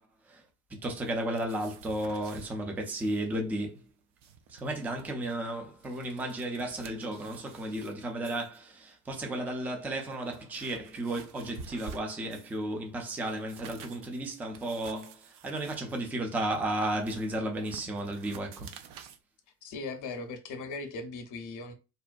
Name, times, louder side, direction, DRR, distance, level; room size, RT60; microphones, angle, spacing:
voice 1, 0.8-3.8 4.5-18.7, right 1 dB, 5° right, 0.3 m, -34 dB
sound 1, 1.0-2.5 2.9-3.2 3.5-3.6 4.0-5.1 5.6-7.9 8.2-8.6 9.3-9.4 9.9-12.6 13.0-19.2, right 6 dB, 55° right, 0.5 m, -50 dB
voice 2, 19.6-21.7, left 3 dB, 40° left, 0.7 m, -38 dB
2.5 x 2.1 x 2.4 m
hypercardioid pair, 65°, 48 cm